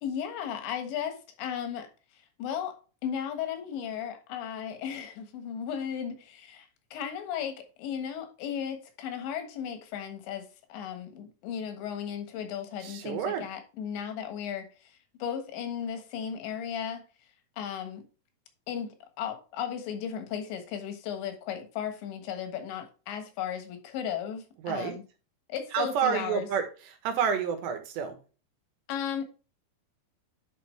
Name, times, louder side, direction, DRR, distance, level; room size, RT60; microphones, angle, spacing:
voice 1, 0.0-1.9 2.4-17.0 17.6-18.0 18.7-25.0 25.5-26.5 28.9-29.2, left 8 dB, 85° left, 3.8 m, -35 dB
voice 2, 12.8-13.5 24.6-25.0 25.7-26.7 27.0-28.2, right 7 dB, 80° right, 3.5 m, -29 dB
10.0 x 5.7 x 3.2 m
omnidirectional pair, 5.0 m